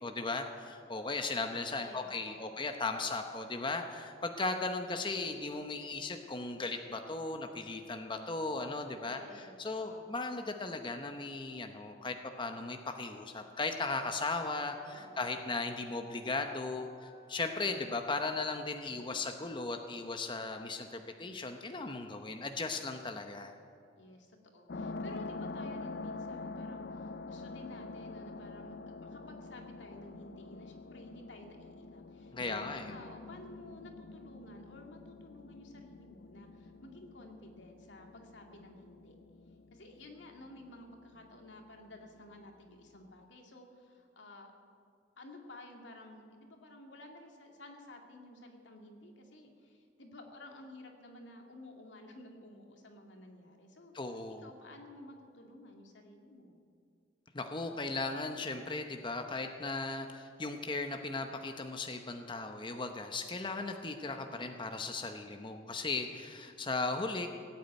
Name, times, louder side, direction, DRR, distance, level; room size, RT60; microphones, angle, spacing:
voice 1, 0.0-23.5 32.3-32.9 53.9-54.5 57.3-67.3, left 3 dB, 25° left, 5 dB, 0.8 m, -37 dB
voice 2, 1.8-2.6 9.0-10.1 14.9-15.3 24.0-39.1 39.7-44.5 45.2-53.9 54.4-56.5, left 1 dB, 85° left, 2 dB, 2.2 m, -53 dB
Wind instrument woodwind instrument, 14.1-18.0, right 1 dB, 15° right, 4.1 m, -58 dB
sound 1, 24.7-43.2, left 3 dB, 60° left, 0.5 m, -46 dB
17.5 x 8.6 x 9.1 m, 2.3 s
head